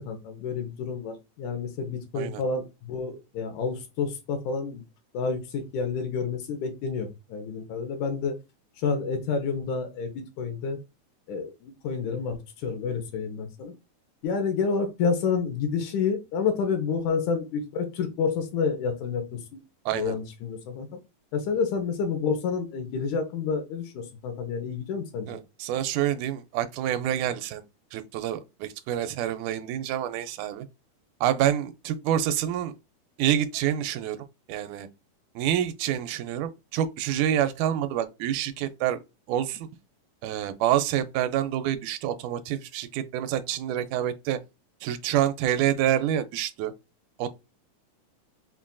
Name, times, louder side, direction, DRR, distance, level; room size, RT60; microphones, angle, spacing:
voice 1, 0.0-4.8 5.1-8.4 8.8-10.8 11.3-13.7 14.2-19.6 19.9-20.9 21.3-25.3, left 5 dB, 80° left, 2.3 m, -29 dB
voice 2, 19.9-20.2 25.3-27.6 27.9-30.7 31.2-32.7 33.2-34.2 34.5-34.9 35.4-39.0 39.3-39.7 40.2-44.4 44.8-46.7 47.2-47.3, right 11 dB, 85° right, 2.0 m, -27 dB
5.6 x 2.5 x 2.2 m
omnidirectional pair, 3.5 m